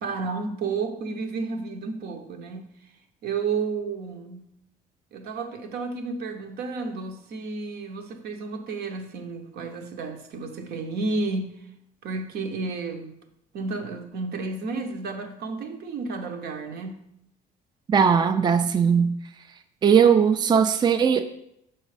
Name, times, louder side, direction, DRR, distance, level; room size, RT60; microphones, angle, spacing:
voice 1, 0.0-2.7 3.2-4.4 5.1-11.5 12.0-13.1 13.5-17.0, right 4 dB, 70° right, 1.0 m, -31 dB
voice 2, 17.9-19.1 19.8-21.3, right 7 dB, 25° right, 0.4 m, -19 dB
6.3 x 4.6 x 5.0 m
cardioid pair, 110°, 17 cm